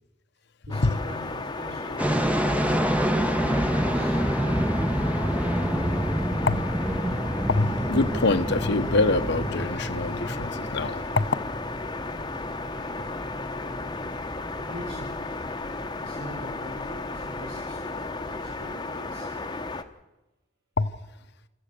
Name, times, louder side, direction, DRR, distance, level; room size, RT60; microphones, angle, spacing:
sound 1, 0.7-19.8, left 3 dB, 20° left, 1.0 m, -34 dB
voice 1, 0.7-2.8 3.4-4.2 14.7-15.2 16.0-19.4, equal, 80° right, 4.0 m, -43 dB
sound 2, 2.0-18.7, right 1 dB, 5° right, 1.0 m, -29 dB
voice 2, 7.5-11.3 20.8-20.9, left 3 dB, 60° left, 1.0 m, -25 dB
29.0 x 14.0 x 6.9 m
head